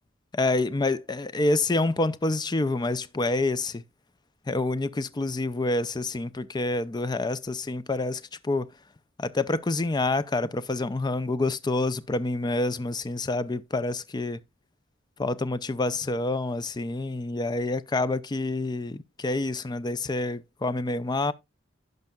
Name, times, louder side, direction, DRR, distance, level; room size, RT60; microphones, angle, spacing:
voice 1, 0.3-3.8 4.5-8.7 9.2-14.4 15.2-21.3, left 2 dB, 20° left, 0.5 m, -27 dB
16.0 x 5.4 x 2.3 m
head